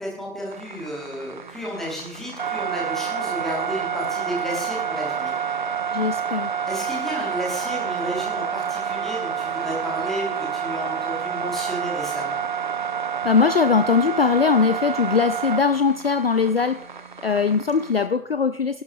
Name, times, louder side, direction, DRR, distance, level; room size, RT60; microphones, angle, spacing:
voice 1, 0.0-5.3 6.7-12.4, equal, ahead, -3 dB, 1.1 m, -32 dB
sound 1, 0.5-18.1, right 7 dB, 35° right, 0.6 m, -29 dB
voice 2, 5.9-6.5 13.2-16.8 17.2-18.8, left 5 dB, 45° left, 11 dB, 0.5 m, -20 dB
22.5 x 11.5 x 2.6 m, 0.75 s
figure-of-eight pair, 145°, 43 cm